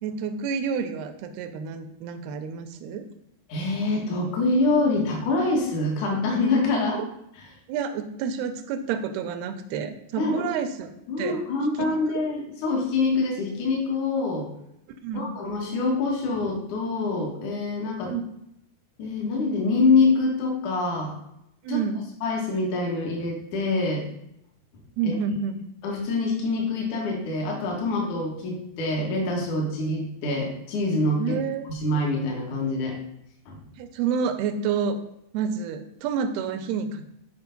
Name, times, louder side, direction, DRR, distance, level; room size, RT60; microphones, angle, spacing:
voice 1, 0.0-3.0 6.9-7.1 7.7-11.4 11.8-12.2 15.0-15.4 18.1-18.2 21.6-22.1 25.0-25.6 31.2-31.7 33.8-35.0 35.3-37.0, right 6 dB, 85° right, 8 dB, 2.7 m, -29 dB
voice 2, 3.5-7.0 7.4-7.5 10.2-10.5 11.1-14.5 15.1-18.1 19.0-21.1 21.7-21.8 22.2-24.1 25.0-25.1 25.8-31.3 31.7-33.0 33.5-33.6, left 3 dB, 60° left, 0 dB, 2.8 m, -25 dB
8.1 x 5.1 x 5.3 m, 0.80 s
omnidirectional pair, 4.5 m